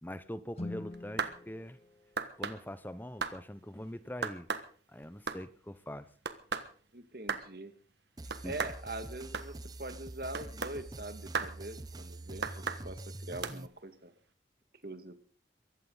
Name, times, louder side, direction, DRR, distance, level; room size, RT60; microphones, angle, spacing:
voice 1, 0.0-1.8 2.4-4.5 4.9-6.1 8.4-8.5, equal, 10° left, 14 dB, 0.8 m, -43 dB
Guitar, 0.5-3.1, left 2 dB, 35° left, 1.8 m, -46 dB
sound 1, 0.9-1.4 2.2-2.6 3.2-3.4 4.2-4.7 5.0-5.4 6.2-6.7 7.3-7.5 8.3-8.8 9.3-9.5 10.3-10.8 11.3-11.5 12.4-12.8 13.4-13.6, right 5 dB, 70° right, 1.4 m, -35 dB
voice 2, 6.9-7.7 8.4-14.1 14.8-15.1, right 2 dB, 55° right, 9 dB, 2.0 m, -43 dB
sound 2, 8.2-13.7, right 2 dB, 20° right, 0.7 m, -45 dB
22.5 x 15.5 x 4.0 m, 0.42 s
head